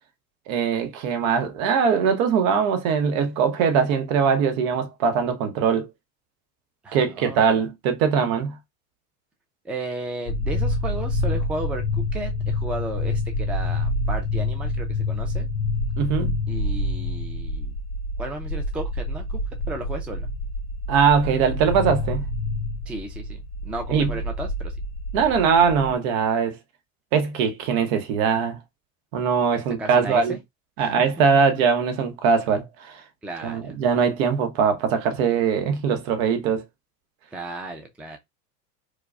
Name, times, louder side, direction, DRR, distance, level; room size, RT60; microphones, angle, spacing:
voice 1, 0.5-5.9 6.9-8.6 16.0-16.4 20.9-22.3 23.9-24.1 25.1-26.6 27.1-28.6 29.1-30.4 30.8-33.0 33.4-36.6, right 6 dB, 55° right, 0.9 m, -21 dB
voice 2, 6.8-7.6 9.6-15.5 16.5-17.7 18.2-19.4 19.7-20.3 22.9-24.8 29.8-30.4 30.8-30.9 33.2-33.8 37.3-38.2, right 2 dB, 5° right, 0.4 m, -34 dB
sound 1, 10.3-25.9, left 2 dB, 35° left, 0.9 m, -27 dB
4.5 x 2.3 x 2.3 m
hypercardioid pair, 80°, 48 cm